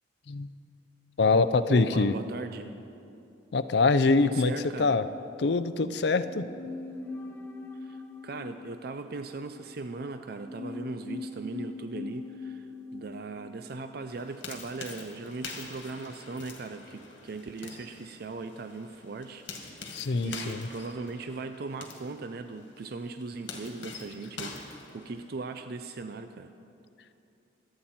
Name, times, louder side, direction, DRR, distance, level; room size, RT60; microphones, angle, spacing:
voice 1, 1.2-2.1 3.5-4.5 4.8-5.0 5.4-6.5 19.9-20.7, left 3 dB, 60° left, 12 dB, 0.5 m, -24 dB
voice 2, 1.7-2.8 4.2-5.0 7.8-26.5, right 3 dB, 55° right, 8 dB, 0.5 m, -39 dB
sound 1, 6.0-15.4 15.6-15.7, left 3 dB, 10° left, 0.9 m, -43 dB
sound 2, 14.1-25.5, left 4 dB, 80° left, 2.0 m, -45 dB
24.5 x 8.8 x 4.3 m, 2.7 s
head